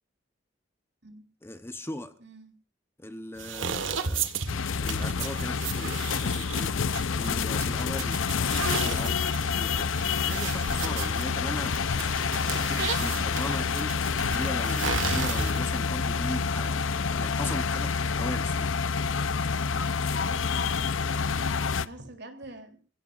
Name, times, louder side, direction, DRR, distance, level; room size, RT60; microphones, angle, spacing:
voice 1, 1.4-2.1 3.0-4.3 4.8-6.8 7.1-8.2 8.5-9.9 10.2-14.0 14.3-18.7, left 1 dB, 10° left, 9 dB, 0.9 m, -39 dB
voice 2, 2.2-2.5 20.2-20.9 21.6-22.8, right 2 dB, 60° right, 5 dB, 3.4 m, -46 dB
sound 1, 3.4-15.8, right 6 dB, 85° right, 1.5 m, -35 dB
sound 2, 4.5-21.9, left 5 dB, 90° left, 0.7 m, -28 dB
28.0 x 16.0 x 2.6 m, 0.35 s
head